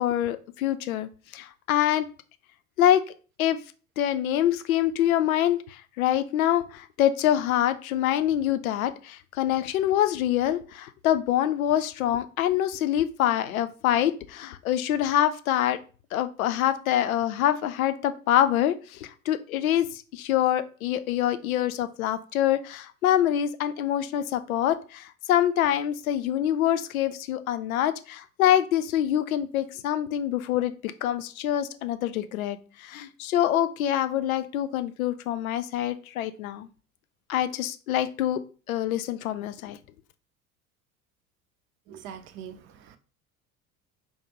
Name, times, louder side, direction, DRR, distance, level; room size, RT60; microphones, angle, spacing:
voice 1, 0.0-2.1 2.8-3.0 3.4-3.6 4.0-15.8 16.1-36.7 37.3-38.4 38.7-39.8, left 11 dB, 70° left, 0.5 m, -25 dB
voice 2, 41.9-43.0, right 8 dB, 30° right, 0.4 m, -43 dB
4.8 x 2.1 x 2.9 m
figure-of-eight pair, 65°, 44 cm